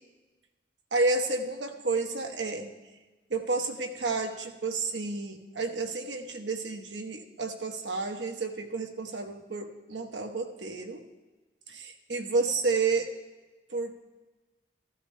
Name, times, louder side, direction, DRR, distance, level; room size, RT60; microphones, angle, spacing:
voice 1, 0.9-2.7 3.3-11.0 11.7-13.1 13.7-13.9, right 3 dB, 75° right, 4 dB, 1.1 m, -31 dB
15.0 x 14.5 x 2.2 m, 1.2 s
head